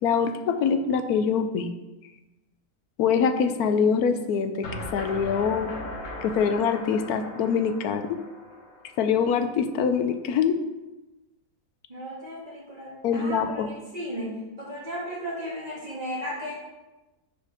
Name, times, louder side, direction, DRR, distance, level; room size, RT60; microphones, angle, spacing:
voice 1, 0.0-1.7 3.0-5.7 6.2-8.2 9.0-10.6 13.0-13.7, left 6 dB, 80° left, 8 dB, 1.2 m, -24 dB
sound 1, 4.6-9.6, left 1 dB, 55° left, 1.5 m, -39 dB
voice 2, 11.9-16.5, equal, 25° right, -7 dB, 2.4 m, -35 dB
10.5 x 4.8 x 3.5 m, 1.1 s
omnidirectional pair, 1.6 m